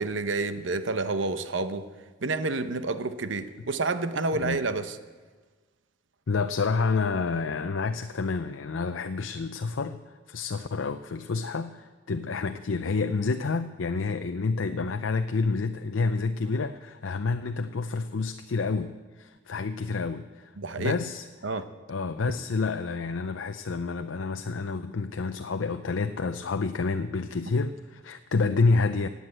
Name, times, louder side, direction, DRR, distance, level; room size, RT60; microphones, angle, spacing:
voice 1, 0.0-1.8 2.2-5.0 20.6-21.0 21.4-21.6, right 3 dB, 75° right, 10 dB, 0.9 m, -29 dB
voice 2, 6.3-10.0 10.3-20.5 20.8-21.3 21.9-29.1, left 4 dB, 85° left, 8 dB, 0.6 m, -29 dB
18.0 x 8.1 x 7.9 m, 1.4 s
head